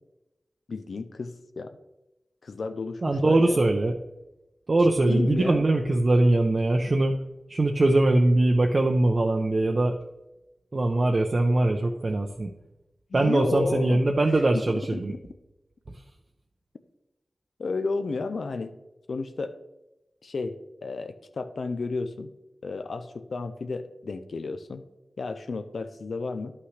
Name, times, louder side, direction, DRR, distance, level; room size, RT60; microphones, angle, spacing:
voice 1, 0.7-1.8 2.4-3.6 4.8-5.7 13.1-14.0 14.5-14.6 14.9-15.2 17.6-18.7 19.1-19.6 20.2-22.3 22.6-24.8 25.2-26.5, left 3 dB, 70° left, 9 dB, 0.4 m, -32 dB
voice 2, 3.0-3.9 4.7-7.2 7.5-9.9 10.7-12.5 13.1-15.1, right 2 dB, 40° right, 3 dB, 0.5 m, -22 dB
11.5 x 5.8 x 3.2 m, 0.97 s
wide cardioid pair, 120°, 0 cm